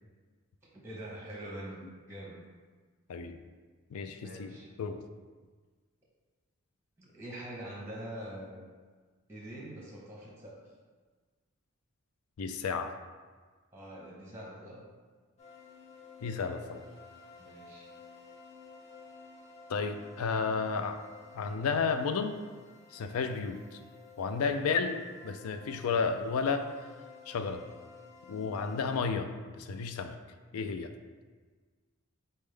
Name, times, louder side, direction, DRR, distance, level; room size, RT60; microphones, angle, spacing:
voice 1, 0.6-1.8 2.1-2.4 4.2-4.7 7.0-8.6 9.3-10.6 13.7-14.8 17.4-17.9, right 1 dB, 10° right, -4 dB, 0.8 m, -44 dB
voice 2, 3.9-4.5 4.8-5.0 12.4-12.9 16.2-16.8 19.7-21.0 21.3-22.3 22.9-23.8 24.2-26.7 27.3-27.6 28.3-29.3 29.6-30.2 30.5-30.9, left 5 dB, 85° left, 8 dB, 0.4 m, -32 dB
sound 1, 15.4-29.0, left 5 dB, 30° left, 0.6 m, -53 dB
4.2 x 3.6 x 3.3 m, 1.4 s
head